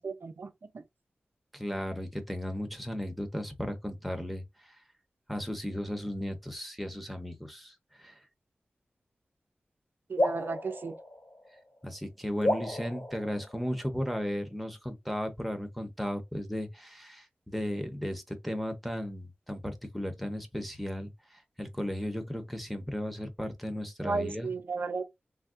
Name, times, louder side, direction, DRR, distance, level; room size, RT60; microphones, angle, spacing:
voice 1, 0.0-0.8 10.1-11.0 24.0-25.1, right 4 dB, 65° right, 0.5 m, -34 dB
voice 2, 1.5-4.8 5.3-8.2 11.8-24.5, equal, ahead, 0.7 m, -35 dB
sound 1, 10.2-11.8 12.4-14.1, left 1 dB, 60° left, 1.9 m, -33 dB
3.5 x 2.2 x 2.4 m
wide cardioid pair, 75°, 4 cm